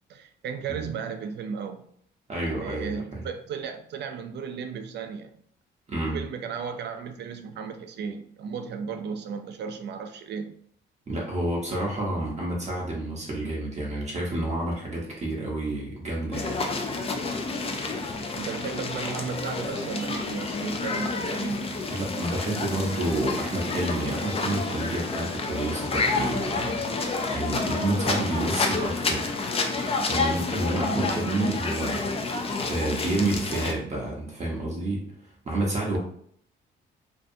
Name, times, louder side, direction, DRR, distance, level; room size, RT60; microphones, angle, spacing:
voice 1, 0.1-1.9 2.4-5.3 6.1-10.6 18.4-21.7 30.7-31.1, right 6 dB, 60° right, 8 dB, 0.4 m, -35 dB
voice 2, 2.3-3.3 5.9-6.2 11.1-16.6 21.9-29.3 30.1-36.0, right 2 dB, 35° right, -3 dB, 0.7 m, -29 dB
sound 1, 16.3-33.7, left 3 dB, 30° left, 0.4 m, -29 dB
2.6 x 2.2 x 2.6 m, 0.64 s
cardioid pair, 90°, 20 cm